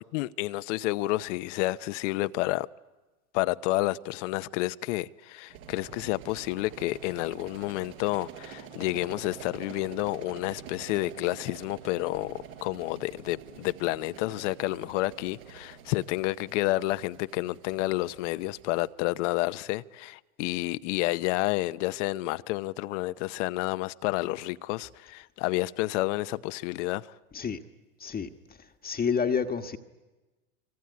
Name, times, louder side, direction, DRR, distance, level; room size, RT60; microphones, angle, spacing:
voice 1, 0.1-2.7 3.3-27.1, left 18 dB, 55° left, 0.9 m, -30 dB
sound 1, 5.5-18.9, right 8 dB, 75° right, 7.0 m, -47 dB
voice 2, 28.8-29.8, left 6 dB, 20° left, 1.4 m, -28 dB
25.5 x 25.0 x 9.5 m
hypercardioid pair, 105°, 43 cm